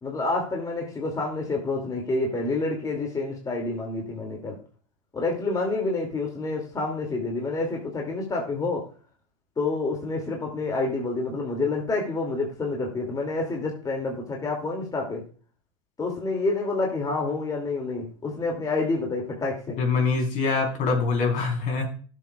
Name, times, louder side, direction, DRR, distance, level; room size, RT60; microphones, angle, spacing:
voice 1, 0.0-4.6 5.1-8.9 9.6-15.2 16.0-19.8, left 3 dB, 20° left, 0 dB, 2.8 m, -28 dB
voice 2, 19.8-21.9, left 4 dB, 50° left, 3 dB, 4.2 m, -24 dB
17.0 x 7.5 x 2.5 m, 0.41 s
hypercardioid pair, 85°, 17 cm